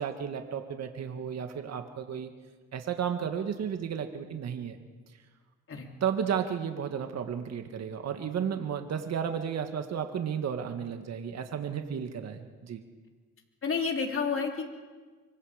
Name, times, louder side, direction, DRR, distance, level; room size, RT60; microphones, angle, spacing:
voice 1, 0.0-2.3 2.7-4.8 6.0-12.8, right 8 dB, 60° right, 6 dB, 1.8 m, -33 dB
voice 2, 13.6-14.6, left 5 dB, 45° left, 2 dB, 3.4 m, -30 dB
25.0 x 22.5 x 5.1 m, 1.4 s
cardioid pair, 90°, 30 cm